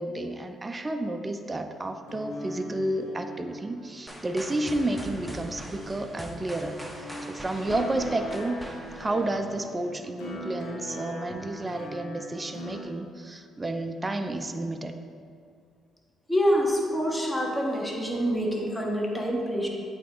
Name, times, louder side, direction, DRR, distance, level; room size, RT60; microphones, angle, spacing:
voice 1, 0.0-6.8 7.2-8.6 8.9-15.0, right 2 dB, 25° right, 6 dB, 0.4 m, -31 dB
sound 1, 2.0-12.8, equal, 85° left, 1.1 m, -41 dB
sound 2, 4.1-10.0, equal, 5° right, 0.8 m, -42 dB
voice 2, 16.3-19.7, equal, 10° left, 0 dB, 1.2 m, -26 dB
8.3 x 3.5 x 3.8 m, 2.3 s
supercardioid pair, 60°, 0 cm